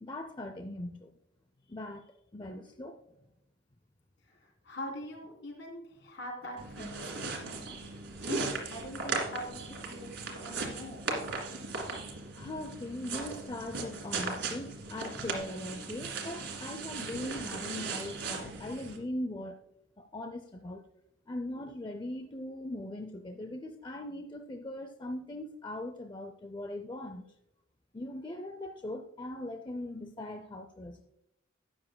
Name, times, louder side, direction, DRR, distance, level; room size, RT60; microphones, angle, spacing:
voice 1, 0.0-1.1 1.7-3.0 12.3-19.6 20.0-20.8 21.3-27.3 27.9-31.1, left 1 dB, 20° left, 6 dB, 0.4 m, -40 dB
voice 2, 4.2-7.7 8.2-11.0, left 1 dB, 55° left, 1 dB, 3.3 m, -43 dB
sound 1, 6.6-19.0, right 3 dB, 60° right, 2.2 m, -38 dB
12.5 x 9.5 x 2.2 m, 0.83 s
head